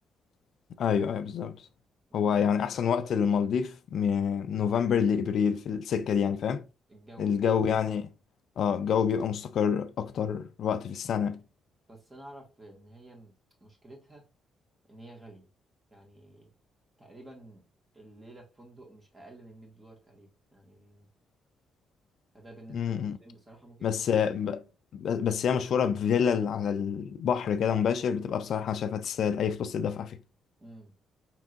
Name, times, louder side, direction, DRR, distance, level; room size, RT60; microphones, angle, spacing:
voice 1, 0.8-1.7 2.1-6.6 7.2-8.1 8.6-11.4 22.7-23.2 23.8-24.6 24.9-30.2, left 7 dB, 65° left, 0.4 m, -27 dB
voice 2, 6.9-7.5 11.9-14.2 14.9-15.5 15.9-16.5 17.0-17.6 17.9-21.1 22.3-24.2 30.6-30.9, right 1 dB, 15° right, 1.7 m, -51 dB
4.5 x 3.7 x 2.5 m
cardioid pair, 90°, 0 cm